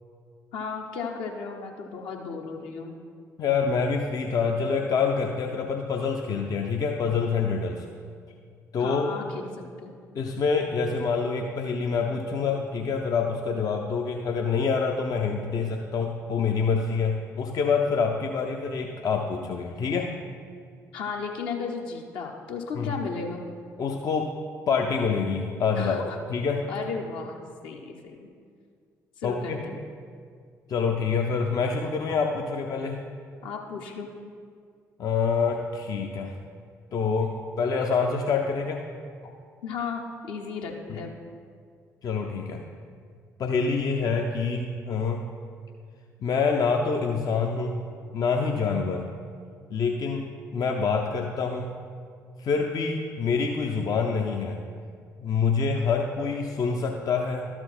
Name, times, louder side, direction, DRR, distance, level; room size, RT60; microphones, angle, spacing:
voice 1, 0.5-3.0 8.8-9.9 20.9-23.4 25.8-26.2 26.7-27.4 27.6-28.3 29.2-29.8 33.4-34.1 39.6-41.2, left 5 dB, 60° left, 1 dB, 1.0 m, -35 dB
voice 2, 3.4-7.9 8.7-9.1 10.2-20.1 22.7-22.9 23.8-24.3 24.7-26.0 26.3-26.7 29.2-29.6 30.7-33.0 35.0-36.3 36.9-38.8 40.9-41.0 42.0-42.6 43.4-45.3 46.2-47.8 48.1-49.1 49.7-51.8 52.4-54.6 55.2-57.5, left 5 dB, 45° left, 2 dB, 0.6 m, -26 dB
12.5 x 4.4 x 4.3 m, 2.1 s
figure-of-eight pair, 45°, 9 cm